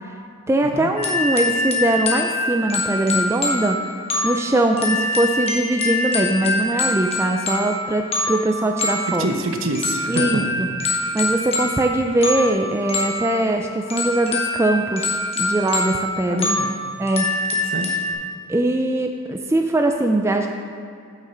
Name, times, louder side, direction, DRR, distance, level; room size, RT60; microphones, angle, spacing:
voice 1, 0.5-3.8 4.2-9.3 10.1-10.7 11.1-16.5 17.0-17.3 18.5-20.5, right 1 dB, 10° right, 3 dB, 0.3 m, -21 dB
sound 1, 1.0-18.1, left 2 dB, 30° left, 1.1 m, -25 dB
voice 2, 9.1-10.4 10.8-11.1 16.3-16.7 17.7-18.0, right 2 dB, 65° right, 4 dB, 0.9 m, -27 dB
8.6 x 6.5 x 5.0 m, 2.4 s
head